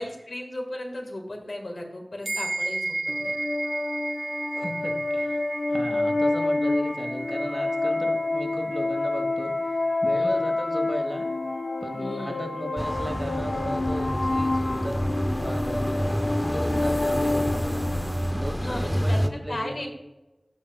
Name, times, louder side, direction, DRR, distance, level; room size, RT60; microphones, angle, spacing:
voice 1, 0.0-3.3 10.1-10.4 11.9-12.5 18.6-19.9, left 1 dB, 80° left, 1 dB, 1.7 m, -36 dB
sound 1, 2.2-12.0, right 2 dB, 75° right, 1.3 m, -35 dB
sound 2, 3.1-18.5, left 2 dB, 60° left, 0.4 m, -28 dB
voice 2, 4.5-11.3 11.8-15.1 15.4-16.2 16.4-18.0 18.3-19.9, equal, 20° right, 4 dB, 1.3 m, -36 dB
sound 3, 12.8-19.3, equal, 5° left, 0.6 m, -28 dB
13.5 x 5.3 x 2.3 m, 1.0 s
wide cardioid pair, 60°, 0 cm